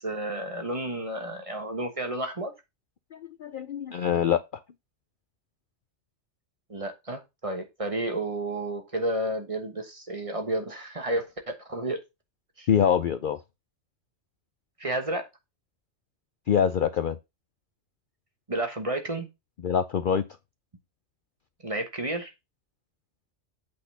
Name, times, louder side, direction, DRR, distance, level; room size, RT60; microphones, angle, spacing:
voice 1, 0.0-2.5 6.7-12.0 12.6-12.7 14.8-15.3 18.5-19.3 21.6-22.3, right 1 dB, 30° right, 1.3 m, -31 dB
voice 2, 3.1-4.4 12.7-13.4 16.5-17.2 19.6-20.2, left 8 dB, 55° left, 0.6 m, -24 dB
8.7 x 4.1 x 5.4 m
omnidirectional pair, 1.3 m